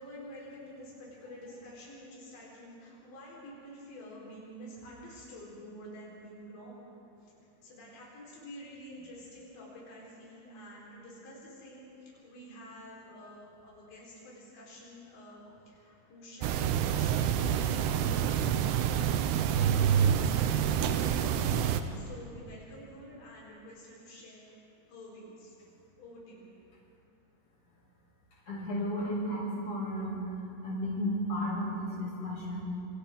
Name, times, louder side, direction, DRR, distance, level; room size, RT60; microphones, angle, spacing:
voice 1, 0.0-6.9 7.6-18.6 18.9-24.5 24.9-25.5 26.0-26.5, equal, 90° left, -5 dB, 6.5 m, -49 dB
sound 1, 16.4-21.8, right 9 dB, 80° right, 2.8 m, -27 dB
voice 2, 28.5-32.6, equal, 40° left, -6 dB, 7.4 m, -33 dB
27.5 x 27.0 x 3.7 m, 2.7 s
omnidirectional pair, 4.9 m